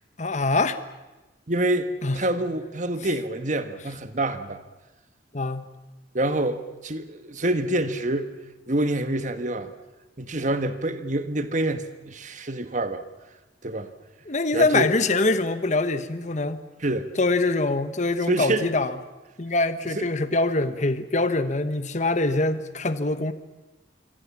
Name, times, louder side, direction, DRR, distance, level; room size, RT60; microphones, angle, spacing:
voice 1, 0.2-0.8 2.0-2.2 5.3-5.6 14.3-16.6 17.2-18.9 19.4-23.3, left 2 dB, 40° left, 11 dB, 1.1 m, -24 dB
voice 2, 1.5-4.6 6.1-8.3 8.7-9.7 10.2-13.0 13.6-13.9 14.5-14.9 16.8-17.2 18.3-18.7 19.8-20.1, right 1 dB, 40° right, 10 dB, 1.5 m, -27 dB
26.0 x 25.5 x 7.3 m, 1.1 s
head